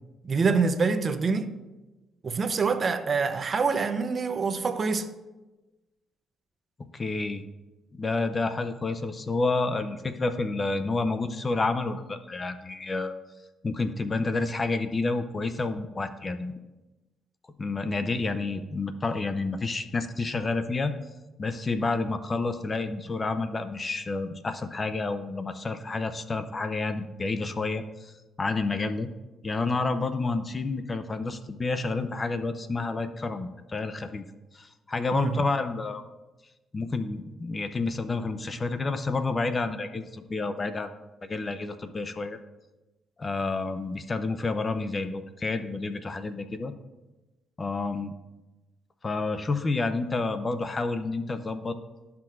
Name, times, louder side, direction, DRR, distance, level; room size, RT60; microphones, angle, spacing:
voice 1, 0.2-1.5 2.2-5.1 35.1-35.4, right 4 dB, 40° right, 8 dB, 0.6 m, -25 dB
voice 2, 6.8-7.4 7.9-13.1 13.6-16.5 17.6-20.9 21.4-29.1 29.4-34.2 34.5-36.0 36.7-40.9 41.2-42.4 43.2-46.7 47.6-48.1 49.0-51.8, left 3 dB, 30° left, 10 dB, 0.5 m, -29 dB
12.0 x 5.9 x 2.5 m, 1.1 s
cardioid pair, 90°, 0 cm